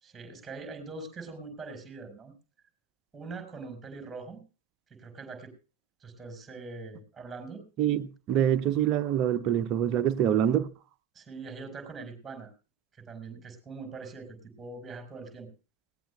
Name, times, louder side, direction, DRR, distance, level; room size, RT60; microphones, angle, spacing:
voice 1, 0.0-2.3 3.1-4.4 4.9-5.5 6.0-7.6 11.1-12.5 13.0-15.5, right 4 dB, 10° right, 4.9 m, -42 dB
voice 2, 7.8-10.7, right 10 dB, 35° right, 0.8 m, -25 dB
19.0 x 17.5 x 2.4 m
figure-of-eight pair, 90°, 0 cm